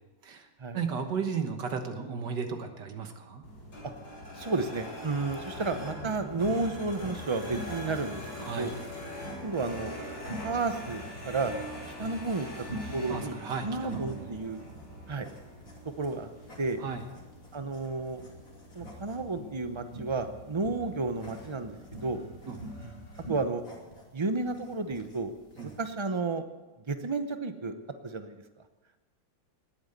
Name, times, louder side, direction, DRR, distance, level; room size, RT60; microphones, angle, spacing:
voice 1, 0.7-3.4 8.4-8.7 13.1-14.3 16.8-17.1 22.5-22.6 25.6-25.7, right 6 dB, 65° right, 6 dB, 1.9 m, -34 dB
sound 1, 3.4-23.3, equal, 60° left, 8.1 m, -42 dB
voice 2, 4.4-8.2 8.6-8.7 9.4-9.9 10.4-11.5 12.0-12.5 12.9-13.3 13.6-14.6 15.1-15.3 16.0-16.3 16.6-16.8 17.5-18.2 18.7-21.8 22.0-22.2 23.3-23.6 24.1-25.3 25.8-26.5 26.9-27.7 28.0-28.4, right 3 dB, 40° right, 8 dB, 0.4 m, -31 dB
sound 2, 6.3-25.9, left 1 dB, 45° left, 3.3 m, -56 dB
19.0 x 9.2 x 8.1 m, 1.2 s
omnidirectional pair, 2.1 m